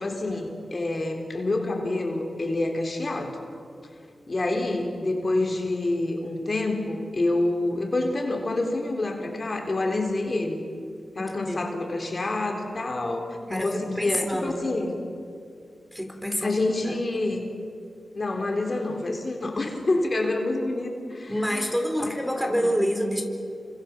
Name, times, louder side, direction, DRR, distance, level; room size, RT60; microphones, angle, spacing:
voice 1, 0.0-3.4 4.3-10.6 11.2-15.0 16.4-17.5 18.1-21.7 22.6-22.8, left 2 dB, 40° left, 2 dB, 3.9 m, -27 dB
voice 2, 11.2-11.6 13.5-14.6 15.9-17.0 21.3-23.2, equal, ahead, 3 dB, 4.1 m, -28 dB
29.0 x 26.0 x 7.4 m, 2.5 s
wide cardioid pair, 85°, 0 cm